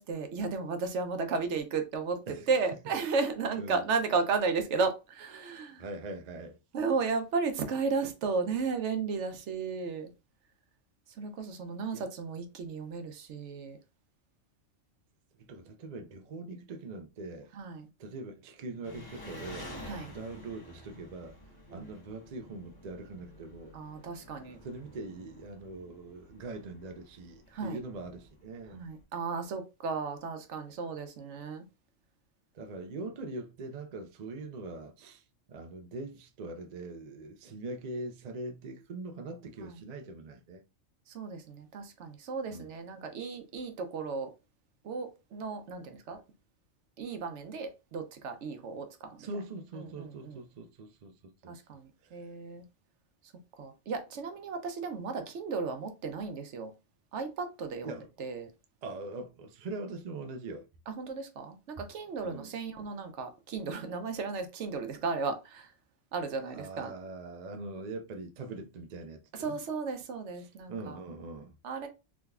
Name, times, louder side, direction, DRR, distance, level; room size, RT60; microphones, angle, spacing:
voice 1, 0.0-5.8 6.7-10.1 11.2-13.8 17.5-17.9 19.9-20.1 21.7-21.9 23.7-24.6 27.5-27.8 28.7-31.7 39.6-39.8 41.1-44.3 44.8-46.2 47.0-49.3 49.8-50.4 51.5-52.6 53.6-56.7 57.1-58.5 60.9-65.7 66.1-66.9 69.3-71.0 71.6-71.9, right 4 dB, 70° right, 0.9 m, -34 dB
voice 2, 5.8-6.6 11.9-12.1 15.4-17.5 18.0-19.7 20.1-21.4 21.7-23.7 24.4-28.8 32.5-35.2 35.5-40.6 42.5-42.7 49.2-51.6 57.8-58.1 58.8-60.7 62.2-62.5 66.5-69.6 70.4-71.5, right 2 dB, 50° right, 0.5 m, -42 dB
Engine, 18.8-29.0, left 1 dB, 20° left, 0.9 m, -50 dB
3.5 x 3.0 x 2.2 m
omnidirectional pair, 1.3 m